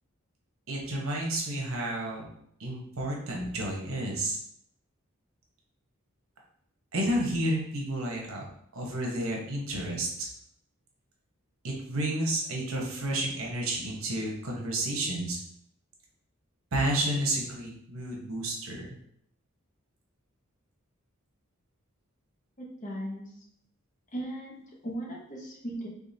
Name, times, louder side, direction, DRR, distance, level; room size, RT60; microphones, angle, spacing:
voice 1, 0.7-2.2 2.6-4.4 6.9-8.5 8.7-10.3 11.6-15.4 16.7-18.9, right 1 dB, 80° right, -1 dB, 0.9 m, -31 dB
voice 2, 22.6-23.3 24.1-25.9, right 1 dB, 35° left, -2 dB, 0.9 m, -37 dB
3.7 x 3.5 x 2.7 m, 0.70 s
head